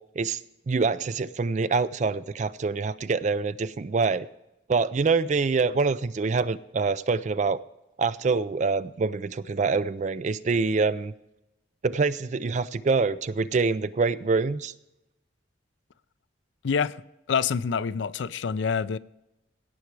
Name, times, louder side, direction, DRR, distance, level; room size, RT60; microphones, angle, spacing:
voice 1, 0.7-4.3 4.7-7.6 8.0-11.1 11.8-14.7, right 4 dB, 40° right, 0.4 m, -25 dB
voice 2, 16.6-17.0 17.3-19.0, left 6 dB, 70° left, 0.4 m, -26 dB
17.0 x 6.0 x 4.7 m
head